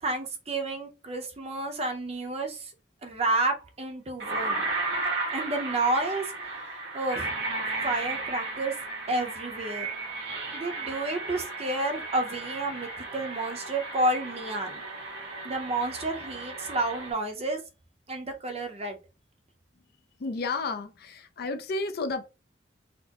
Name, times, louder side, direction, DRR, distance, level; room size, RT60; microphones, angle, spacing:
voice 1, 0.0-2.7 3.0-4.7 5.3-6.3 6.9-7.3 7.8-8.7 9.1-9.9 10.5-14.8 15.4-17.6 18.1-19.0, right 2 dB, 35° right, 0.7 m, -30 dB
sound 1, 4.2-17.1, right 3 dB, 85° right, 1.3 m, -34 dB
voice 2, 20.2-22.3, left 3 dB, 60° left, 0.5 m, -32 dB
4.3 x 2.0 x 2.9 m
head